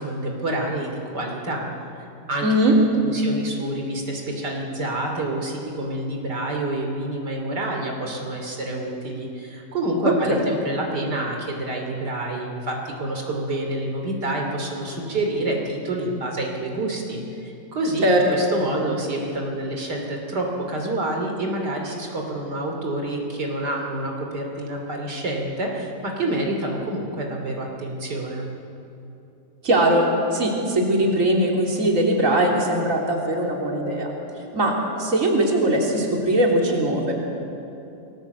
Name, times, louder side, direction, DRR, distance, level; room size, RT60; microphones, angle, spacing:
voice 1, 0.0-1.6 2.0-2.5 3.0-28.5, right 1 dB, 70° right, 1 dB, 3.6 m, -28 dB
voice 2, 2.4-2.8 10.0-10.1 18.0-18.3 29.6-30.1 30.3-34.1 34.5-37.1, right 1 dB, 45° right, -1 dB, 3.8 m, -20 dB
30.0 x 21.0 x 8.2 m, 2.9 s
omnidirectional pair, 1.9 m